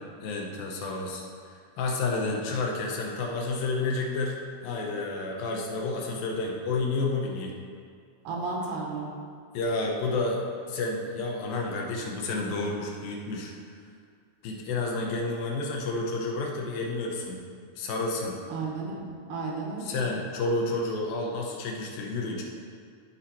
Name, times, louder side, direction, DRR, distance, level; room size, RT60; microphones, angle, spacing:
voice 1, 0.2-4.4 4.6-7.5 9.5-10.4 10.7-13.5 14.4-17.4 17.8-18.4 19.8-22.4, left 3 dB, 75° left, -1 dB, 2.6 m, -30 dB
voice 2, 8.2-9.1 18.5-20.0, right 3 dB, 85° right, -1 dB, 3.3 m, -33 dB
13.5 x 4.9 x 4.2 m, 2.2 s
omnidirectional pair, 4.5 m